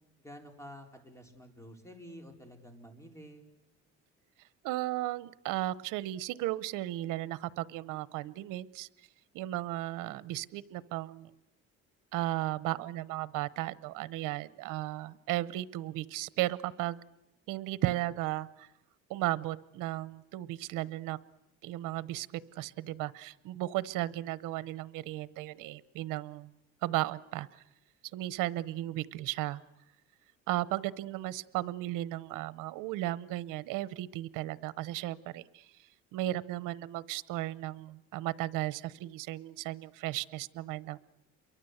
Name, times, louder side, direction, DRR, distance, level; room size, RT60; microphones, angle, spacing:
voice 1, 0.2-3.4, equal, 10° left, 5 dB, 4.0 m, -50 dB
voice 2, 4.6-8.9 9.3-11.3 12.1-17.0 17.5-18.7 19.1-21.2 21.6-26.5 26.8-27.6 28.1-29.6 30.5-35.7 36.1-41.0, right 16 dB, 85° right, 18 dB, 0.9 m, -35 dB
29.0 x 23.5 x 8.0 m, 0.91 s
cardioid pair, 125°, 31 cm